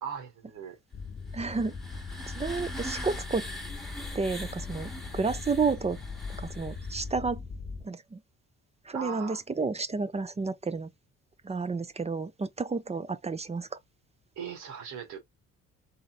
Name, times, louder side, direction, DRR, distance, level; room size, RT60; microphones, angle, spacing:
voice 1, 0.0-0.8 8.9-9.4 14.4-15.2, right 7 dB, 80° right, 2.0 m, -38 dB
sound 1, 0.9-7.9, left 4 dB, 30° left, 0.6 m, -40 dB
sound 2, 1.3-7.1, equal, ahead, 1.3 m, -42 dB
voice 2, 1.3-1.8 2.3-3.5 4.1-6.0 6.4-7.4 7.8-8.2 8.9-10.9 11.4-13.7, right 4 dB, 20° right, 0.6 m, -31 dB
4.2 x 3.6 x 2.4 m
cardioid pair, 90°, 30 cm